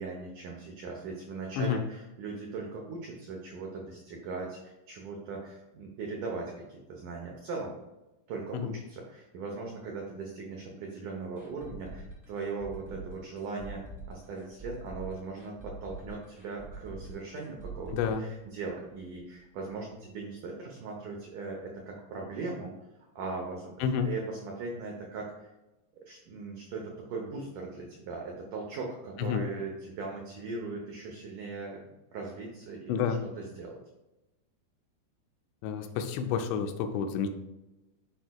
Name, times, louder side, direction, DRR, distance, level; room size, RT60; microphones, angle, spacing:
voice 1, 0.0-7.7 8.3-22.7 23.2-25.5 26.0-31.8 32.1-33.0 33.4-33.8, right 3 dB, 90° right, 0 dB, 1.7 m, -39 dB
sound 1, 11.3-19.1 19.3-19.4 19.8-19.9, right 2 dB, 15° right, 0.7 m, -45 dB
voice 2, 17.9-18.2 23.8-24.1 29.2-29.4 32.9-33.2 35.6-37.3, left 7 dB, 90° left, 7 dB, 2.9 m, -29 dB
10.5 x 4.7 x 2.3 m, 1.0 s
omnidirectional pair, 4.9 m